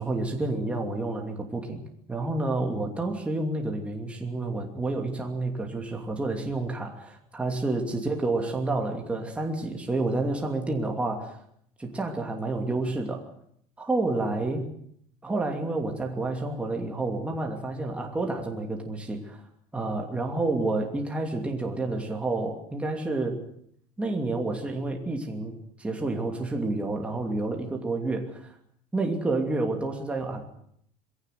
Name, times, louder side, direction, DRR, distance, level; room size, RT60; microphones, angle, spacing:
voice 1, 0.0-1.8 2.1-11.4 11.8-13.3 13.8-14.6 15.2-19.4 19.7-23.4 24.0-28.5 28.9-30.4, right 2 dB, 10° right, 2 dB, 2.8 m, -29 dB
22.0 x 17.0 x 9.3 m, 0.68 s
cardioid pair, 160°, 14 cm